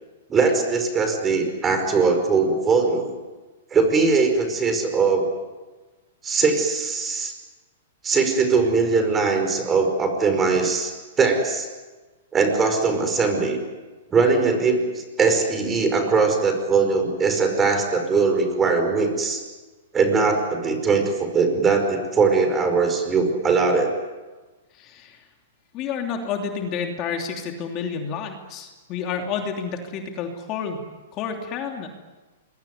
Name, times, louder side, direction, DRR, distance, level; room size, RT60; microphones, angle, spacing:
voice 1, 0.3-3.1 3.7-5.3 6.2-7.3 8.0-11.7 12.3-13.6 14.1-19.4 19.9-23.9, right 4 dB, 15° right, 6 dB, 5.1 m, -21 dB
voice 2, 24.7-25.3 25.7-30.8 31.1-31.9, left 6 dB, 30° left, 3 dB, 3.0 m, -30 dB
26.0 x 22.5 x 9.6 m, 1.2 s
hypercardioid pair, 150°, 0 cm